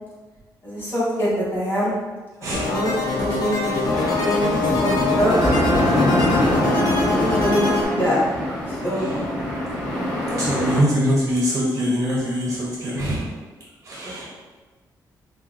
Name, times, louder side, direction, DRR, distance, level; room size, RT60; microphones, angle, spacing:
voice 1, 0.6-1.9 2.4-2.9 3.2-5.4 7.0-8.2 8.7-9.1 14.0-14.3, equal, 30° left, -9 dB, 1.1 m, -24 dB
voice 2, 2.4-2.7 7.3-7.5 8.9-9.2 10.3-13.3 13.8-14.3, equal, 35° right, -5 dB, 0.5 m, -24 dB
sound 1, 2.5-7.9, left 3 dB, 65° left, 0.6 m, -24 dB
sound 2, 3.9-10.8, left 1 dB, 10° left, 1.1 m, -23 dB
3.7 x 2.0 x 2.4 m, 1.3 s
wide cardioid pair, 170°, 8 cm